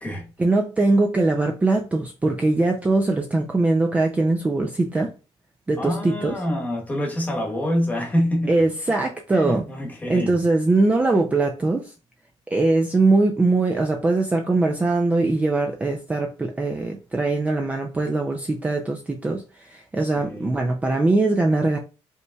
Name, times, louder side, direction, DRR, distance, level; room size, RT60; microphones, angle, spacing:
voice 1, 0.4-5.1 5.7-6.4 8.5-9.6 10.1-11.9 12.5-21.8, right 2 dB, 15° right, 0.4 m, -21 dB
voice 2, 5.8-8.6 9.3-10.4 20.0-20.5, equal, 15° left, 1.2 m, -26 dB
5.2 x 3.1 x 2.3 m
cardioid pair, 150°, 11 cm